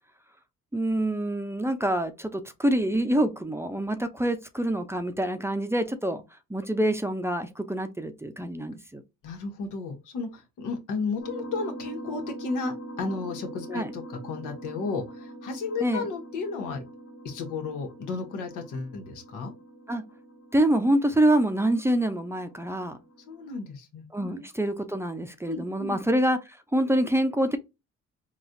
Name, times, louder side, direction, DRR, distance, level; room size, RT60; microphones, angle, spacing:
voice 1, 0.7-6.2 6.5-9.0 13.7-13.9 15.8-16.1 19.9-20.0 20.5-23.0 24.1-27.6, right 1 dB, 10° right, 0.5 m, -26 dB
voice 2, 9.2-16.8 17.2-19.5 23.3-24.4 25.5-26.0, left 4 dB, 90° left, 1.2 m, -33 dB
sound 1, 11.2-23.6, right 1 dB, 40° left, 1.5 m, -43 dB
4.1 x 2.3 x 2.6 m
cardioid pair, 90°, 30 cm